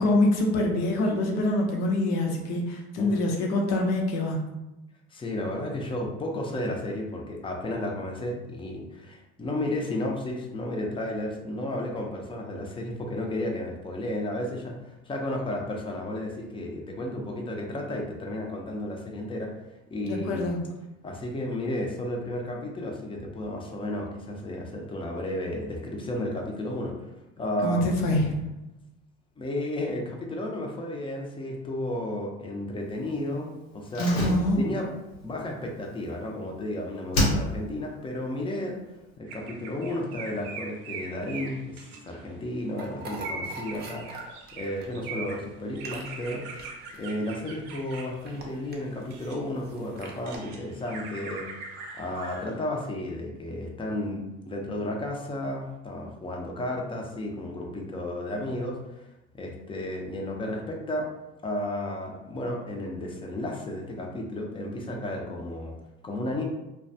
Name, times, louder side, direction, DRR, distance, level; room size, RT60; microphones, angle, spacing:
voice 1, 0.0-4.4 20.0-20.6 27.6-28.3 34.0-34.6, left 1 dB, 60° left, 1 dB, 0.7 m, -25 dB
voice 2, 5.1-19.5 19.9-20.5 21.0-27.1 27.4-27.9 29.4-34.2 34.6-34.9 35.2-38.8 39.2-46.4 47.0-51.5 51.9-59.1 59.4-61.1 61.4-65.7 66.0-66.4, left 1 dB, 15° left, 0 dB, 0.6 m, -33 dB
Slam, 33.9-36.7 37.1-37.9 38.1-38.2, left 1 dB, 85° left, 0.8 m, -29 dB
sound 1, 39.3-42.5 43.1-49.4 49.9-52.5, right 4 dB, 75° right, 0.6 m, -41 dB
sound 2, 42.8-50.4, right 2 dB, 35° right, 0.6 m, -44 dB
2.2 x 2.2 x 2.7 m, 0.97 s
supercardioid pair, 80°, 30 cm